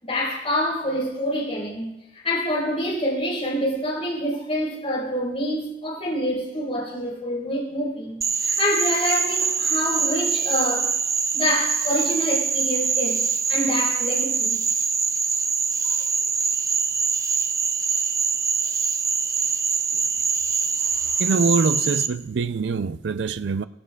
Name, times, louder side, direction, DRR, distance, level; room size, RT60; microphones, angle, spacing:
voice 1, 0.0-10.9 11.3-13.2 13.5-14.6 15.8-16.0 20.8-20.9, equal, 35° left, 4.3 m, -26 dB
Frog, 8.2-22.1, right 5 dB, 20° right, 0.5 m, -24 dB
voice 2, 21.2-23.6, right 4 dB, 80° right, 0.4 m, -24 dB
17.5 x 16.0 x 2.4 m
head